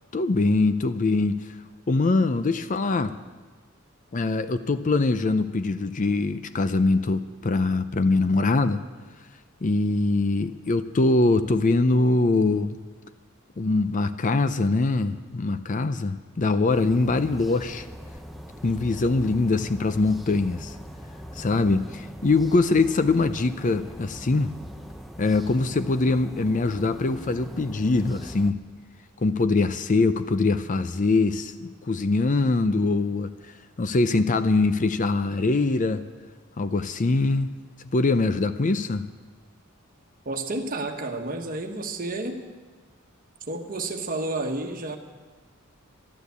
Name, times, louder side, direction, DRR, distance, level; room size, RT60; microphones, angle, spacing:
voice 1, 0.1-1.5 1.9-3.2 4.1-8.8 9.6-12.8 13.6-17.9 18.6-20.8 21.4-24.5 25.2-28.6 29.2-33.3 33.8-36.0 36.6-37.6 37.9-39.1, left 3 dB, 35° left, 12 dB, 0.5 m, -23 dB
sound 1, 16.7-28.5, equal, ahead, 0.7 m, -41 dB
voice 2, 40.2-42.4 43.5-45.0, right 2 dB, 40° right, 4 dB, 1.3 m, -30 dB
12.0 x 12.0 x 8.2 m, 1.3 s
head